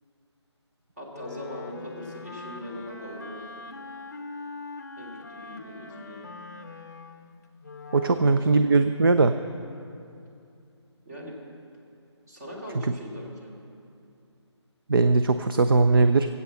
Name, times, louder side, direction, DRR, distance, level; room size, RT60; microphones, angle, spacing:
voice 1, 1.0-3.5 5.0-6.2 8.0-8.8 11.0-11.5 12.3-13.5, equal, 35° right, -3 dB, 2.7 m, -40 dB
Wind instrument woodwind instrument, 1.1-8.5, left 3 dB, 40° left, 0.6 m, -42 dB
voice 2, 7.9-9.3 14.9-16.3, right 3 dB, 50° right, 9 dB, 0.5 m, -20 dB
18.5 x 8.3 x 7.6 m, 2.6 s
hypercardioid pair, 175°, 15 cm